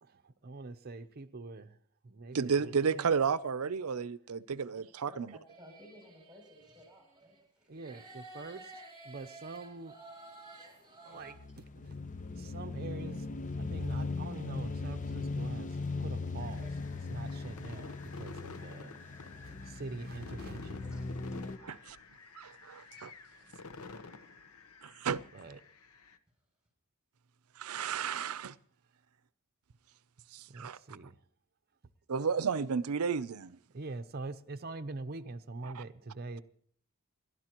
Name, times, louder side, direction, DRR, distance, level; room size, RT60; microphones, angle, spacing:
voice 1, 0.0-1.8 2.0-3.1 7.7-10.0 11.0-12.0 12.3-13.3 13.5-16.7 17.1-19.0 19.4-20.8 25.3-25.6 30.5-31.2 33.7-36.4, right 3 dB, 45° right, 0.7 m, -44 dB
voice 2, 2.3-5.4 21.7-22.0 22.4-23.1 24.8-25.2 27.6-28.6 30.3-30.8 32.1-33.6 35.6-35.8, right 6 dB, 85° right, 0.6 m, -32 dB
voice 3, 4.5-8.2 16.0-16.2 16.6-16.7 20.8-21.6 23.4-23.5 24.0-24.4, equal, 5° right, 7.1 m, -58 dB
sound 1, 5.5-7.4 7.7-11.3, right 2 dB, 25° right, 3.3 m, -52 dB
sound 2, 11.3-21.6, left 3 dB, 35° left, 0.7 m, -39 dB
sound 3, 16.4-26.2, left 4 dB, 80° left, 0.9 m, -51 dB
28.0 x 12.5 x 3.0 m
head